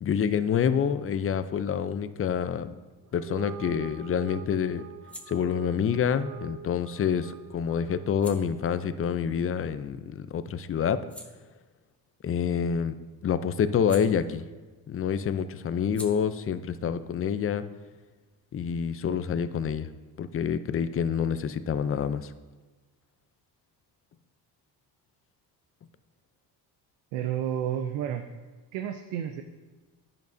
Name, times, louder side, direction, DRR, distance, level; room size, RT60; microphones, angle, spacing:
voice 1, 0.0-2.7 3.1-4.8 5.3-11.0 12.2-12.9 13.2-14.4 14.9-17.7 18.5-19.9 20.2-22.3, left 7 dB, 30° left, 12 dB, 0.5 m, -27 dB
sound 1, 3.0-9.6, right 10 dB, 40° right, 0.6 m, -44 dB
sound 2, 4.9-10.2 10.6-14.8 15.1-18.5, left 1 dB, 5° left, 1.0 m, -52 dB
voice 2, 27.1-28.2 28.7-29.4, right 10 dB, 90° right, 6 dB, 0.7 m, -30 dB
10.5 x 9.0 x 2.7 m, 1.3 s
cardioid pair, 90°, 44 cm